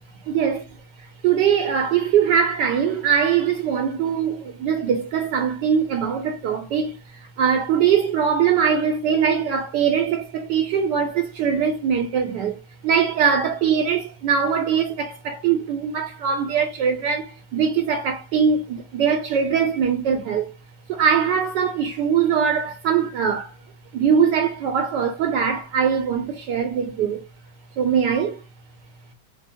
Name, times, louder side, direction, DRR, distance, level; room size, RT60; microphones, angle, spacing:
voice 1, 0.3-0.6 1.0-20.5 20.9-23.5 23.9-27.2 27.8-28.4, right 7 dB, 75° right, 1.1 m, -22 dB
5.0 x 2.0 x 2.7 m
omnidirectional pair, 2.2 m